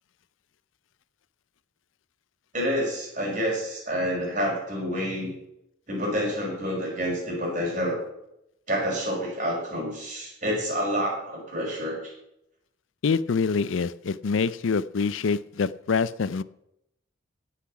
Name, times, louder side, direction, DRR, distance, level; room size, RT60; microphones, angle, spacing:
voice 1, 2.5-5.3 5.9-8.0 8.7-12.1, equal, 40° right, -3 dB, 5.1 m, -28 dB
voice 2, 13.0-16.4, left 5 dB, 80° left, 18 dB, 0.5 m, -25 dB
17.0 x 5.9 x 6.0 m, 0.82 s
head